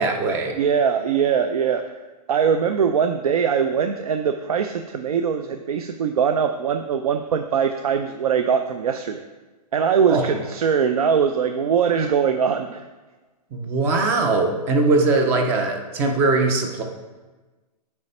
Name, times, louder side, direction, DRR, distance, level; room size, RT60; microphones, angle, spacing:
voice 1, 0.0-0.6 10.1-10.3 13.5-16.8, right 3 dB, 10° right, 4 dB, 0.4 m, -21 dB
voice 2, 0.6-1.9 2.3-9.2 9.7-12.9, right 7 dB, 65° right, 7 dB, 0.5 m, -21 dB
9.2 x 3.2 x 5.4 m, 1.2 s
hypercardioid pair, 165°, 21 cm